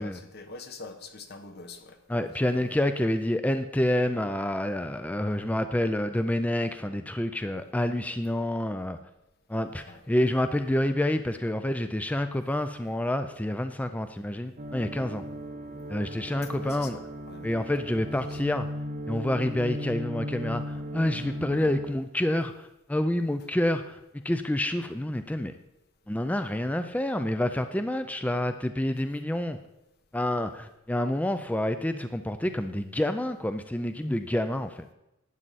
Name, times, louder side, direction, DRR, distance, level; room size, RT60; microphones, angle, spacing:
voice 1, 0.0-2.0 2.5-2.7 9.8-10.0 16.6-17.7 18.1-18.4, left 3 dB, 50° left, 1.1 m, -45 dB
voice 2, 2.1-9.0 9.5-15.2 15.9-17.0 17.4-18.7 19.1-25.5 26.1-29.6 30.1-34.9, left 1 dB, 5° left, 0.4 m, -28 dB
sound 1, 14.6-21.9, equal, 40° right, 0.8 m, -37 dB
12.0 x 9.0 x 4.2 m
head